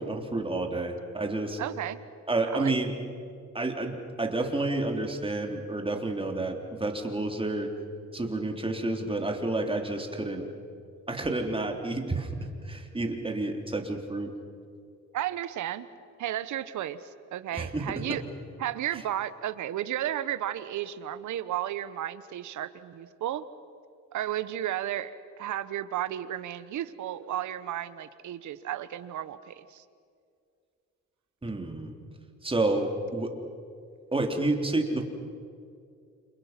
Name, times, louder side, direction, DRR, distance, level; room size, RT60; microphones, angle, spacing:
voice 1, 0.0-1.6 2.3-3.0 3.5-7.7 8.1-10.5 11.1-14.3 17.5-18.2 31.4-31.9 32.4-33.4 34.1-35.0, right 2 dB, 20° right, 3 dB, 3.5 m, -30 dB
voice 2, 1.6-2.0 2.5-2.7 15.1-15.9 16.2-18.2 18.6-23.4 24.1-29.8, right 12 dB, 75° right, 13 dB, 1.3 m, -33 dB
29.5 x 27.5 x 6.0 m, 2.3 s
cardioid pair, 90°, 30 cm